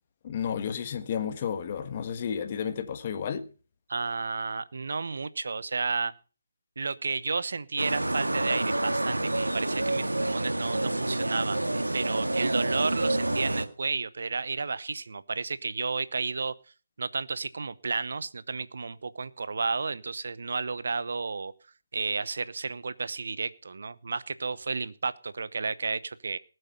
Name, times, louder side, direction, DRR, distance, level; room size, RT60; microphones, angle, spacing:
voice 1, 0.2-3.4, left 7 dB, 35° left, 1.6 m, -32 dB
voice 2, 3.9-6.1 6.8-16.5 17.0-21.5 21.9-26.4, right 4 dB, 60° right, 0.9 m, -32 dB
sound 1, 7.8-13.6, right 1 dB, 85° right, 1.9 m, -28 dB
18.5 x 8.0 x 5.6 m
figure-of-eight pair, 155°, 0 cm